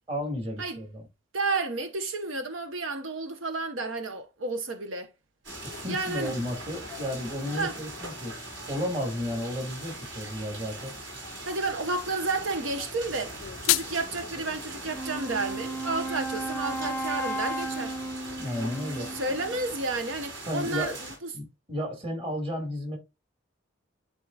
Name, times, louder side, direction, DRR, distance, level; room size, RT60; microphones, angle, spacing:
voice 1, 0.1-1.0 5.6-8.4 8.7-10.9 18.4-19.1 20.5-21.0 21.3-23.0, equal, 30° right, 2.0 m, -33 dB
voice 2, 1.3-5.1 5.9-6.3 7.5-7.8 11.4-13.3 13.6-18.0 19.1-21.3, right 3 dB, 80° right, 0.9 m, -31 dB
sound 1, 5.4-21.2, right 1 dB, 65° right, 4.4 m, -41 dB
sound 2, 13.2-14.2, left 18 dB, 80° left, 0.3 m, -28 dB
Wind instrument woodwind instrument, 14.8-19.8, right 1 dB, 10° left, 0.6 m, -34 dB
11.5 x 3.8 x 2.3 m
head